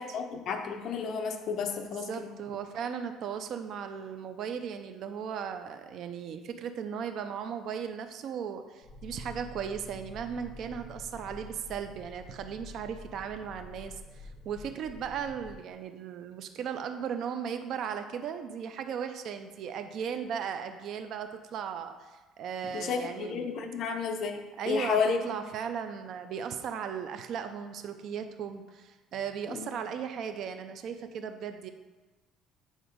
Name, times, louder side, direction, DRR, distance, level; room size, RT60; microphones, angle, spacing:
voice 1, 0.0-2.3 22.6-25.2 29.5-29.7, left 5 dB, 50° left, 5 dB, 0.8 m, -32 dB
voice 2, 2.1-23.5 24.6-31.7, right 7 dB, 55° right, 7 dB, 0.6 m, -37 dB
sound 1, 8.8-15.6, left 1 dB, 30° left, 2.5 m, -47 dB
8.0 x 3.8 x 5.2 m, 1.2 s
cardioid pair, 125°, 0 cm